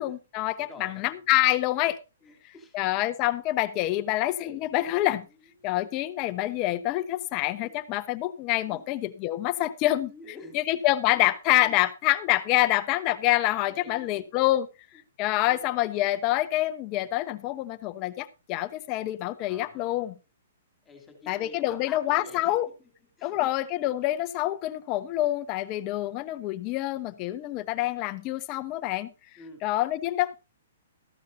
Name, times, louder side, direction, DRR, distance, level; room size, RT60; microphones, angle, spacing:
voice 1, 0.0-2.0 2.7-5.2 5.6-10.1 10.5-14.7 15.2-20.1 21.3-22.7 23.2-29.1 29.6-30.3, left 16 dB, 30° left, 1.0 m, -26 dB
voice 2, 0.6-1.3 2.2-3.0 6.4-6.6 7.6-7.8 8.7-8.8 9.5-9.8 10.0-10.8 11.1-11.8 13.7-14.3 14.9-15.0 15.5-15.6 19.4-20.2 20.8-22.9 23.2-23.5 29.4-29.6, left 2 dB, 10° left, 3.4 m, -49 dB
14.5 x 12.5 x 2.7 m
hypercardioid pair, 155°, 0 cm